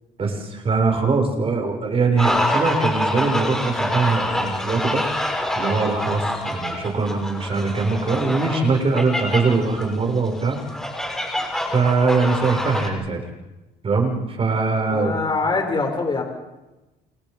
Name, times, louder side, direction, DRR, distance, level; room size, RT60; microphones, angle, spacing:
voice 1, 0.2-5.0 5.5-10.6 11.7-13.2 13.8-15.2, right 4 dB, 35° right, 3 dB, 7.1 m, -22 dB
sound 1, 2.2-12.9, left 1 dB, 5° left, 6.4 m, -26 dB
voice 2, 14.9-16.2, left 3 dB, 25° left, 2 dB, 7.4 m, -23 dB
29.0 x 28.5 x 5.5 m, 1.1 s
cardioid pair, 110°, 17 cm